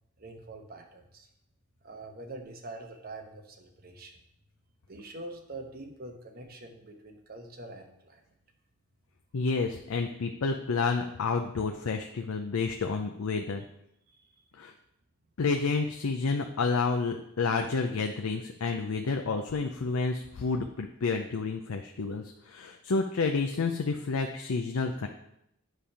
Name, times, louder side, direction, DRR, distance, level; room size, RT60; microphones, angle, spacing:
voice 1, 0.2-1.3 1.8-4.2 4.9-8.2 14.1-14.3, right 2 dB, 45° right, 3 dB, 1.0 m, -45 dB
voice 2, 9.3-13.7 14.6-14.7 15.4-25.1, left 4 dB, 80° left, 4 dB, 0.5 m, -30 dB
9.3 x 3.4 x 5.7 m, 0.79 s
head